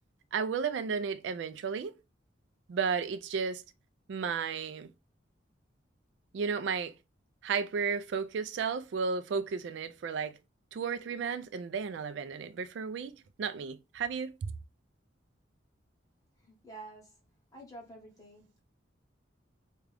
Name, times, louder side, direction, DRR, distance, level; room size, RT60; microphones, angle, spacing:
voice 1, 0.3-2.0 2.7-3.6 4.1-4.9 6.3-6.9 7.4-10.4 10.7-14.3, right 5 dB, 65° right, 0.3 m, -33 dB
voice 2, 16.4-17.2 17.5-18.6, right 2 dB, 20° left, 1.3 m, -49 dB
3.6 x 2.3 x 3.3 m
head